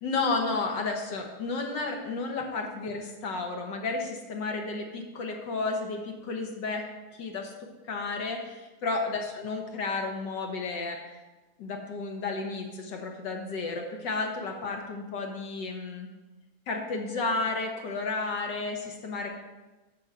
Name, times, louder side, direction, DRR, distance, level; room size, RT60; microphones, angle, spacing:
voice 1, 0.0-6.9 7.2-7.5 7.8-11.2 11.6-16.1 16.7-19.3, left 3 dB, 65° left, 2 dB, 1.7 m, -32 dB
7.6 x 5.6 x 7.4 m, 1.1 s
omnidirectional pair, 2.3 m